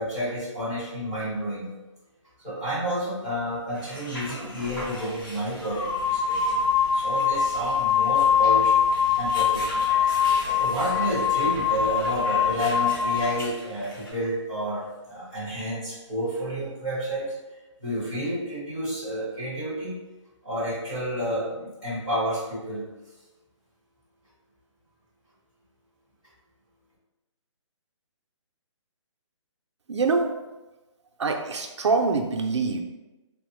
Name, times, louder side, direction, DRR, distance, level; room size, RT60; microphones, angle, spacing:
voice 1, 0.0-1.7 2.4-6.6 6.9-8.8 9.1-9.9 10.4-17.3 17.8-20.0 20.4-22.8, equal, 10° left, -12 dB, 0.5 m, -30 dB
sound 1, 3.7-14.1, equal, 40° left, 1.0 m, -40 dB
sound 2, 4.7-4.8 5.6-13.3, left 7 dB, 80° left, 0.6 m, -23 dB
voice 2, 29.9-30.3 31.2-32.8, right 4 dB, 65° right, 3 dB, 0.4 m, -24 dB
3.5 x 2.0 x 3.0 m, 1.1 s
hypercardioid pair, 180°, 16 cm